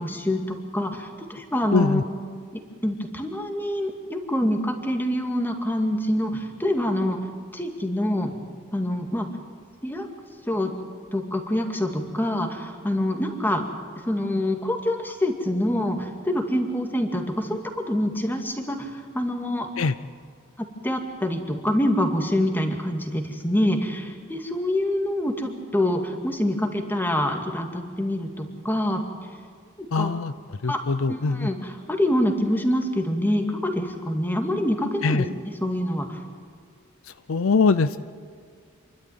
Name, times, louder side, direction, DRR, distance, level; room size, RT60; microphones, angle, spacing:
voice 1, 0.0-2.0 2.5-7.2 7.5-8.3 8.7-9.3 9.8-10.1 10.5-10.7 11.1-13.6 14.0-17.6 17.9-19.7 20.8-29.0 29.8-30.1 30.7-30.8 31.1-35.3 35.6-36.2, left 1 dB, 10° left, 3 dB, 2.2 m, -26 dB
voice 2, 1.7-2.0 19.8-19.9 29.9-30.3 30.6-31.5 35.0-35.3 37.3-38.0, left 4 dB, 70° left, 13 dB, 0.6 m, -22 dB
28.0 x 12.5 x 9.4 m, 2.1 s
head